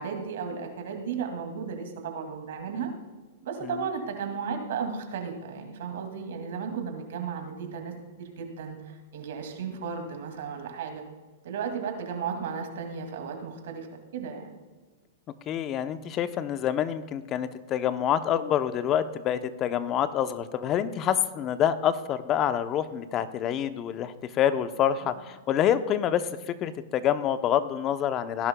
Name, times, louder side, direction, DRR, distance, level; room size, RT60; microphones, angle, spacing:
voice 1, 0.0-2.9 3.4-11.0 11.4-13.9 14.1-14.5 25.0-25.1, right 6 dB, 65° right, 4 dB, 2.3 m, -34 dB
voice 2, 15.5-28.5, left 10 dB, 30° left, 12 dB, 0.7 m, -27 dB
17.5 x 11.0 x 2.3 m, 1.3 s
hypercardioid pair, 120°, 0 cm